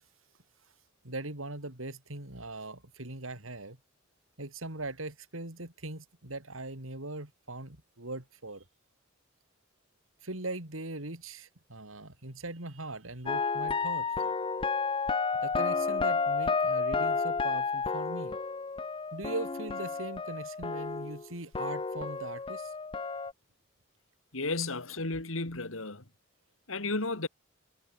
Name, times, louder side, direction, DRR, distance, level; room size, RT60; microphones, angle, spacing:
voice 1, 1.0-3.8 4.4-8.6 10.2-14.1 15.4-18.4 19.1-22.7, right 2 dB, 90° right, 4.2 m, -40 dB
sound 1, 13.3-21.3 21.5-23.3, left 4 dB, 25° left, 0.6 m, -31 dB
voice 2, 24.3-26.0 26.7-27.3, left 3 dB, 90° left, 2.9 m, -33 dB
head